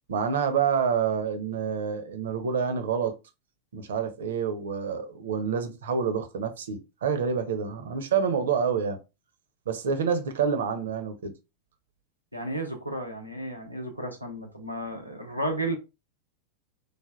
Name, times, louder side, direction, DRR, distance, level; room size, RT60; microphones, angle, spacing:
voice 1, 0.1-3.1 3.7-9.0 9.7-11.3, right 6 dB, 60° right, 0.5 m, -27 dB
voice 2, 12.3-15.8, right 1 dB, 90° left, 0.6 m, -33 dB
3.2 x 2.1 x 2.5 m
figure-of-eight pair, 90°, 0 cm